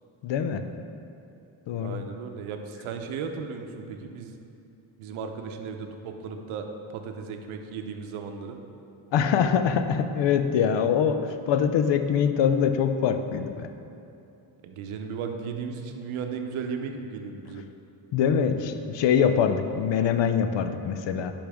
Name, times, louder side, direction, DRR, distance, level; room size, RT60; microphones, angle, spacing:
voice 1, 0.2-0.6 1.7-2.0 9.1-13.7 18.1-21.3, left 7 dB, 65° left, 9 dB, 0.6 m, -24 dB
voice 2, 1.8-4.4 5.0-8.6 14.6-17.6, right 5 dB, 90° right, 5 dB, 0.8 m, -35 dB
10.5 x 5.2 x 3.5 m, 2.8 s
cardioid pair, 95°, 48 cm